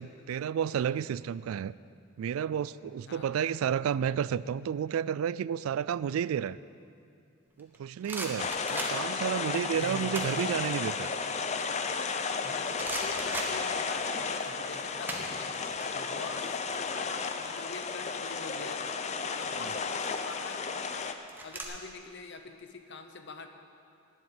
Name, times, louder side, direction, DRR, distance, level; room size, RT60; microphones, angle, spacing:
voice 1, 0.0-1.7 2.2-6.6 7.6-11.1, right 8 dB, 90° right, 19 dB, 0.3 m, -31 dB
sound 1, 7.6-9.3 9.9-10.5 10.8-12.4 12.8-14.2 14.4-15.9 16.1-16.3 16.6-18.2 19.1-19.5 20.2-21.6, right 2 dB, 10° right, 1.1 m, -39 dB
sound 2, 8.4-21.1, left 5 dB, 35° left, 0.5 m, -33 dB
voice 2, 9.7-10.2 12.4-15.6 15.9-18.9 19.4-20.7 21.4-23.5, left 3 dB, 60° left, 7 dB, 0.9 m, -45 dB
9.9 x 8.1 x 9.0 m, 2.4 s
head